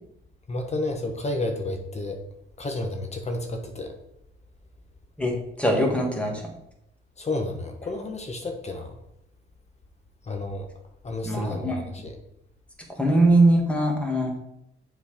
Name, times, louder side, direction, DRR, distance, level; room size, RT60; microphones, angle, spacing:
voice 1, 0.5-2.2 2.6-3.9 7.2-8.9 10.2-10.7 11.0-12.2, left 2 dB, 35° left, 4 dB, 1.1 m, -31 dB
voice 2, 5.6-6.4 11.2-11.8 13.0-14.4, right 1 dB, 5° left, 1 dB, 2.0 m, -21 dB
7.1 x 4.1 x 5.0 m, 0.81 s
cardioid pair, 90°, 20 cm